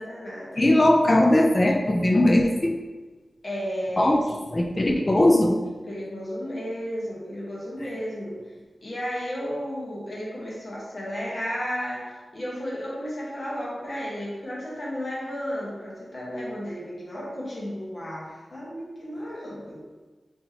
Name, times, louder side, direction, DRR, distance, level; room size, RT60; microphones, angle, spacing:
voice 1, 0.0-0.6 3.4-4.4 5.9-8.4 8.8-19.8, equal, 50° left, -5 dB, 1.2 m, -33 dB
voice 2, 0.6-2.7 4.0-4.2 4.5-5.6 7.8-7.9, left 1 dB, 30° left, 2 dB, 0.3 m, -19 dB
4.5 x 2.8 x 2.8 m, 1.3 s
wide cardioid pair, 95°, 0 cm